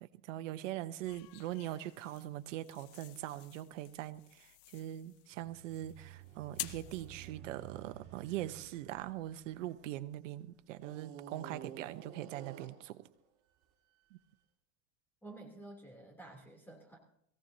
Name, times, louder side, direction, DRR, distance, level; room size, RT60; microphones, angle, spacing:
voice 1, 0.0-13.1 14.1-14.2, right 14 dB, 75° right, 11 dB, 1.1 m, -42 dB
sound 1, 1.0-7.3, left 16 dB, 50° left, 0.7 m, -50 dB
sound 2, 5.3-10.1 10.8-13.0, right 10 dB, 50° right, 2.5 m, -52 dB
voice 2, 15.2-17.0, right 2 dB, 5° left, 0 dB, 3.1 m, -51 dB
22.5 x 16.5 x 2.8 m, 0.73 s
supercardioid pair, 130°, 37 cm